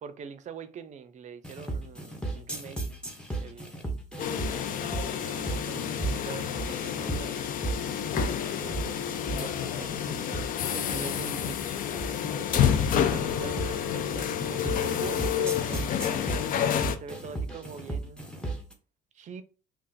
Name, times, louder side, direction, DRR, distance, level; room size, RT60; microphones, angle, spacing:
voice 1, 0.0-2.8 3.4-3.8 5.0-7.5 7.8-10.3 10.7-11.8 12.4-16.3 16.9-18.2 19.1-19.4, right 6 dB, 45° right, 0.5 m, -43 dB
Different & Phase, 1.4-18.7, right 2 dB, 5° left, 0.7 m, -36 dB
sound 1, 4.2-17.0, left 9 dB, 55° left, 0.4 m, -29 dB
2.5 x 2.4 x 3.8 m
cardioid pair, 110°, 17 cm